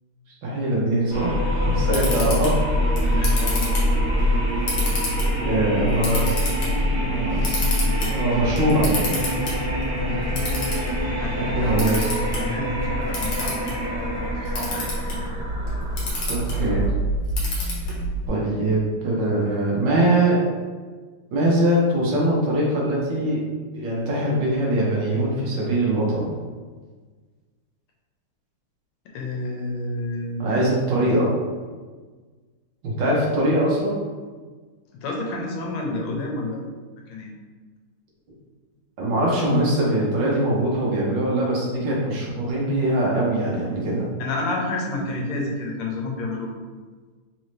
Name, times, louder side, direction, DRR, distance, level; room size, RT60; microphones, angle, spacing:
voice 1, 0.4-2.6 3.0-3.3 5.4-6.5 6.8-7.7 8.1-9.3 11.4-12.1 16.3-16.9 17.6-17.7 18.3-20.4 21.3-23.4 23.7-26.4 30.4-31.3 32.8-34.0 39.0-44.1, right 1 dB, 65° right, -4 dB, 1.5 m, -22 dB
sound 1, 1.1-17.0, equal, 45° right, 0.4 m, -25 dB
Camera, 1.6-18.3, equal, 65° left, 1.6 m, -29 dB
voice 2, 3.1-3.6 9.8-10.7 11.0-12.0 12.4-15.4 29.0-30.4 35.0-36.7 37.1-37.3 44.2-46.5, left 2 dB, 85° left, 0 dB, 1.6 m, -30 dB
4.1 x 2.7 x 3.1 m, 1.4 s
omnidirectional pair, 2.3 m